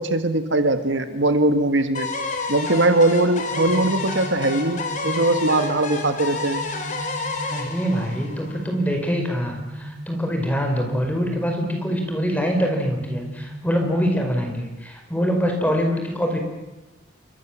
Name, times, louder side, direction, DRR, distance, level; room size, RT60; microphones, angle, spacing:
voice 1, 0.0-2.1 2.5-6.6, right 2 dB, 75° right, 8 dB, 1.9 m, -20 dB
sound 1, 1.9-8.9, left 3 dB, 40° left, 4.4 m, -30 dB
sound 2, 3.7-13.7, right 1 dB, 55° right, 5.3 m, -37 dB
voice 2, 7.5-16.4, equal, 10° left, 3 dB, 5.2 m, -24 dB
29.0 x 24.5 x 7.5 m, 1.1 s
head